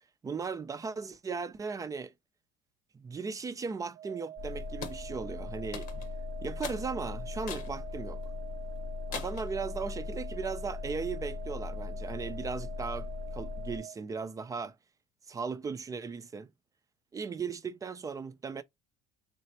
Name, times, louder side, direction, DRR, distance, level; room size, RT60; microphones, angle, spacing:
voice 1, 0.2-2.1 2.9-5.9 6.4-8.2 9.1-14.8 15.3-16.5 17.1-18.6, right 5 dB, 20° right, 0.6 m, -37 dB
sound 1, 3.9-14.0, right 11 dB, 65° right, 0.9 m, -45 dB
sound 2, 4.4-13.8, left 7 dB, 30° left, 0.7 m, -40 dB
sound 3, 4.8-5.0 5.7-6.1 6.6-6.8 7.5-7.7 8.2-8.3 9.1-9.5, left 8 dB, 65° left, 1.0 m, -41 dB
3.2 x 2.7 x 4.2 m
supercardioid pair, 110°, 15 cm